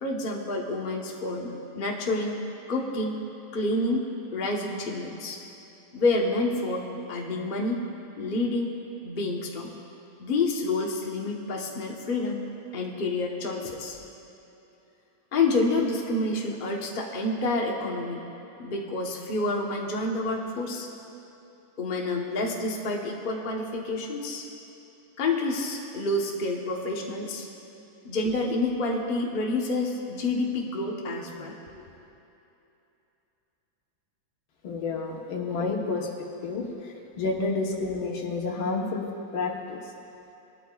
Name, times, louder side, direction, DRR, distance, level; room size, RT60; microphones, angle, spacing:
voice 1, 0.0-2.4 2.7-3.2 3.5-4.1 4.3-5.4 5.9-7.9 8.2-8.7 9.0-9.7 10.2-12.5 12.7-14.0 15.3-18.2 18.6-20.9 21.8-24.5 25.2-27.5 28.0-31.5 35.6-35.7, left 2 dB, 35° left, -1 dB, 1.0 m, -28 dB
voice 2, 34.6-36.1 36.4-39.1 39.3-39.8, left 3 dB, 80° left, 0 dB, 2.0 m, -30 dB
20.0 x 12.5 x 2.4 m, 2.9 s
omnidirectional pair, 2.2 m